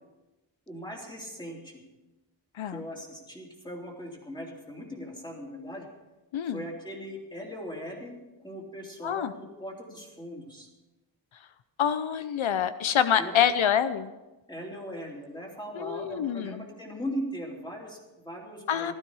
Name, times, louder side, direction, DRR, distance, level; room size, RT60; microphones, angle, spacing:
voice 1, 0.7-1.8 2.7-5.9 6.5-8.2 8.4-10.7 13.2-13.4 14.5-18.9, equal, 10° left, -1 dB, 3.0 m, -39 dB
voice 2, 6.3-6.6 9.0-9.3 11.8-14.1 15.7-16.6 18.7-18.9, left 9 dB, 90° left, 12 dB, 0.7 m, -26 dB
15.0 x 12.5 x 4.8 m, 1.1 s
wide cardioid pair, 135°, 46 cm